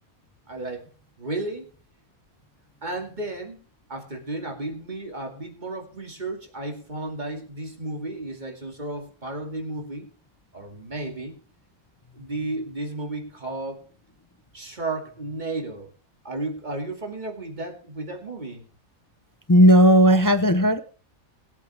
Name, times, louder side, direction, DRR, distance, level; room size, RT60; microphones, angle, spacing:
voice 1, 0.5-0.9 1.2-1.7 2.8-3.6 3.9-10.1 10.5-11.3 12.1-13.8 14.5-15.9 16.2-18.7, right 2 dB, 30° right, 3 dB, 2.3 m, -33 dB
voice 2, 19.5-20.8, equal, 30° left, 11 dB, 0.3 m, -15 dB
20.5 x 8.3 x 3.4 m, 0.36 s
omnidirectional pair, 1.5 m